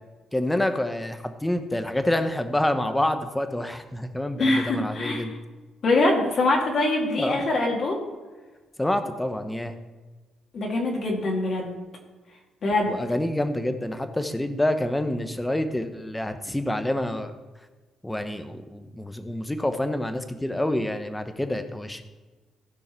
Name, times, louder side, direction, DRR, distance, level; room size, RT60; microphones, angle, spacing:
voice 1, 0.3-5.3 7.2-7.4 8.8-9.8 12.9-17.3 18.0-22.0, left 1 dB, 10° left, 8 dB, 1.0 m, -27 dB
voice 2, 4.4-5.3 5.8-8.0 10.5-11.7 12.6-13.0, left 2 dB, 55° left, -1 dB, 2.2 m, -23 dB
16.0 x 5.4 x 4.5 m, 1.3 s
cardioid pair, 90°, 0 cm